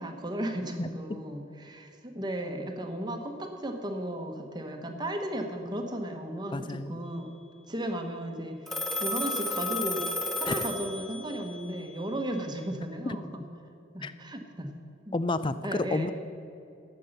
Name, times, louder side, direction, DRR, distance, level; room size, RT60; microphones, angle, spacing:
voice 1, 0.0-7.3 7.7-10.0 10.4-13.4 13.9-14.7 15.1-15.2 15.6-16.1, right 1 dB, 20° right, 4 dB, 1.1 m, -35 dB
voice 2, 6.5-7.0 10.4-10.7 13.1-13.2 14.0-14.1 15.1-16.1, left 2 dB, 25° left, 13 dB, 0.4 m, -30 dB
Telephone, 8.7-11.4, left 2 dB, ahead, 1.0 m, -32 dB
13.0 x 8.5 x 6.6 m, 2.7 s
head